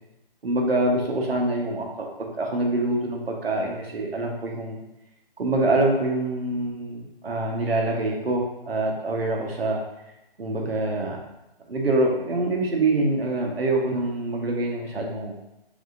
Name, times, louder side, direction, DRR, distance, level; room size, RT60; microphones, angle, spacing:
voice 1, 0.4-4.8 5.4-9.8 10.4-11.2 11.7-15.3, right 2 dB, 90° right, 0 dB, 1.0 m, -25 dB
3.4 x 3.4 x 2.5 m, 0.91 s
hypercardioid pair, 175°, 29 cm